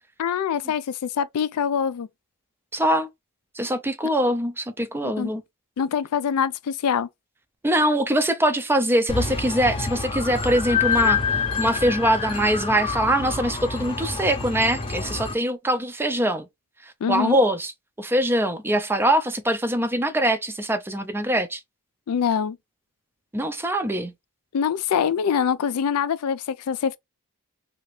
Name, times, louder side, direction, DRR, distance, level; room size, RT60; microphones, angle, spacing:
voice 1, 0.2-2.1 5.0-5.3 5.8-7.1 17.0-17.4 22.1-22.6 24.5-27.0, left 7 dB, 80° left, 0.4 m, -24 dB
voice 2, 2.7-3.1 3.5-5.4 7.6-16.5 16.8-17.7 18.0-21.6 23.3-24.1, right 1 dB, 10° right, 0.4 m, -23 dB
sound 1, 9.1-15.3, left 5 dB, 25° left, 0.7 m, -27 dB
2.8 x 2.4 x 3.1 m
head